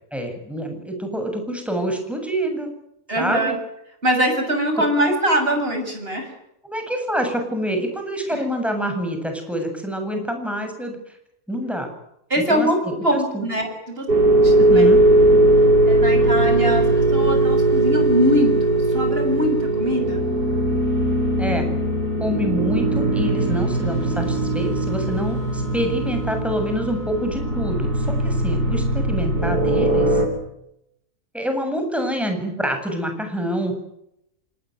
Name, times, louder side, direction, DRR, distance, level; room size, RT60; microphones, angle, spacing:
voice 1, 0.1-2.7 3.2-3.6 6.6-11.0 11.5-11.9 12.5-13.5 14.6-15.0 21.4-21.7 22.2-30.2 31.3-33.7, equal, ahead, 4 dB, 7.8 m, -26 dB
voice 2, 3.1-3.5 4.0-6.3 8.3-8.4 12.3-14.1 14.4-14.8 15.9-20.2, equal, 35° right, 4 dB, 7.2 m, -22 dB
sound 1, 14.1-30.3, right 1 dB, 85° right, 7.0 m, -19 dB
27.5 x 19.5 x 9.5 m, 0.79 s
omnidirectional pair, 1.7 m